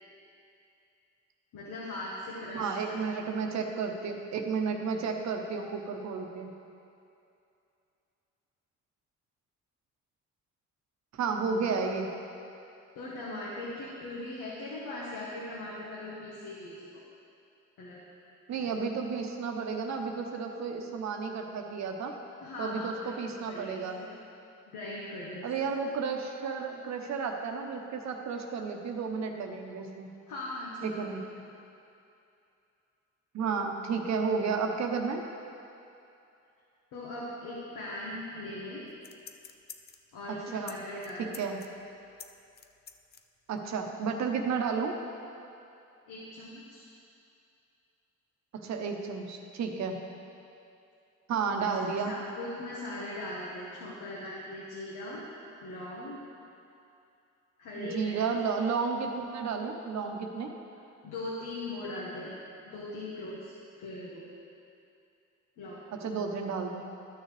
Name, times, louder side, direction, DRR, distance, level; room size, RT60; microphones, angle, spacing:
voice 1, 1.5-3.0 12.9-17.0 17.8-18.0 18.6-18.7 22.4-24.1 24.7-25.5 30.3-30.9 36.9-38.8 40.1-41.4 46.1-46.8 51.6-51.7 52.1-55.2 55.6-56.2 57.6-58.2 61.0-62.3 62.6-64.3 65.6-65.8, left 1 dB, 85° left, -5 dB, 1.4 m, -40 dB
voice 2, 2.5-6.5 11.1-12.1 18.5-22.1 22.6-24.0 25.4-30.1 30.8-31.2 33.3-35.2 40.3-40.8 41.2-41.6 43.5-44.9 48.5-50.0 51.3-52.1 57.8-60.5 66.0-66.8, right 5 dB, 65° right, 3 dB, 0.9 m, -32 dB
sound 1, 38.9-40.1 40.6-40.8 41.0-43.2 43.6-43.7, left 7 dB, 35° left, 0.5 m, -47 dB
13.0 x 6.5 x 3.3 m, 2.7 s
cardioid pair, 90°, 30 cm